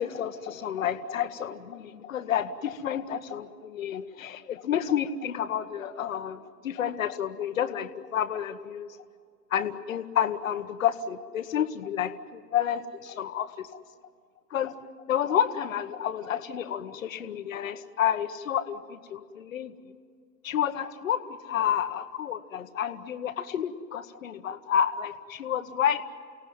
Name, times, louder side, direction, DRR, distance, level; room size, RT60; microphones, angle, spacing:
voice 1, 0.0-8.9 9.5-13.5 14.5-14.7 15.1-19.7 20.4-26.0, left 9 dB, 50° left, 9 dB, 1.3 m, -30 dB
29.5 x 17.5 x 9.3 m, 2.1 s
hypercardioid pair, 135°, 50 cm